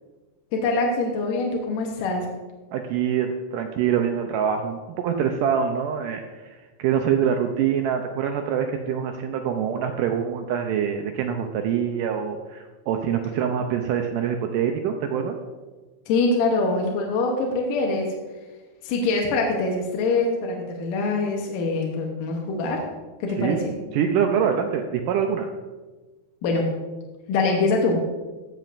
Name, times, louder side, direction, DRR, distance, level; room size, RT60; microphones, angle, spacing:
voice 1, 0.5-2.3 16.1-18.1 18.8-22.8 23.2-23.6 26.4-26.7 27.3-28.0, left 3 dB, 70° left, 0 dB, 2.4 m, -24 dB
voice 2, 2.7-15.4 23.4-23.6 23.9-25.5, right 8 dB, 85° right, 4 dB, 1.9 m, -25 dB
14.5 x 7.5 x 2.5 m, 1.3 s
omnidirectional pair, 4.3 m